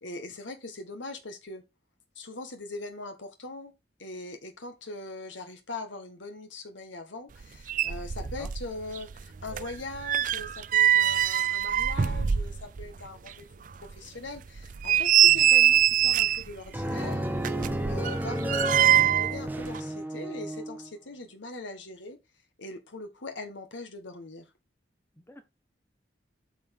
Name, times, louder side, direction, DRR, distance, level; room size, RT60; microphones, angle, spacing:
voice 1, 0.0-1.6 2.1-3.7 4.0-22.2 22.6-24.4, left 2 dB, 85° left, 1.5 m, -41 dB
sound 1, 7.4-7.5 7.7-8.7 9.0-12.9 13.3-13.4 13.9-14.0 14.6-16.5 17.4-19.4 19.6-19.8, right 11 dB, 45° right, 0.4 m, -23 dB
voice 2, 8.4-8.5 11.1-11.2 15.2-15.5 18.1-18.2 25.1-25.4, equal, 10° left, 1.1 m, -48 dB
sound 2, 16.7-20.9, right 1 dB, 10° right, 0.8 m, -32 dB
8.9 x 5.3 x 3.5 m
head